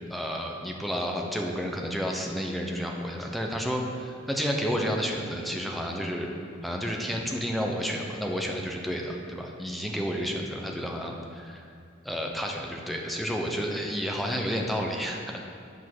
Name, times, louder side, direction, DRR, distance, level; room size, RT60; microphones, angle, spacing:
voice 1, 0.1-6.3 6.6-11.7 12.0-15.4, equal, ahead, 0 dB, 0.8 m, -31 dB
9.6 x 5.3 x 6.1 m, 2.3 s
head